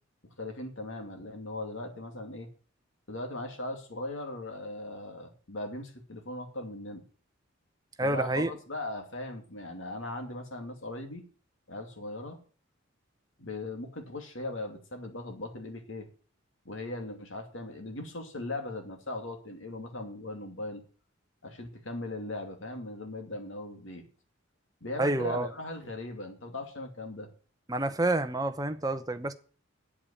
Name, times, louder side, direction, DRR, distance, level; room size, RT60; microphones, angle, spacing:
voice 1, 0.4-2.5 3.1-7.0 8.0-11.2 11.7-12.4 13.4-16.1 16.6-20.8 21.4-24.0 24.8-27.3, left 2 dB, 70° left, 2.6 m, -39 dB
voice 2, 8.0-8.5 25.0-25.5 27.7-29.3, right 2 dB, 20° right, 0.8 m, -28 dB
8.7 x 8.5 x 8.5 m
head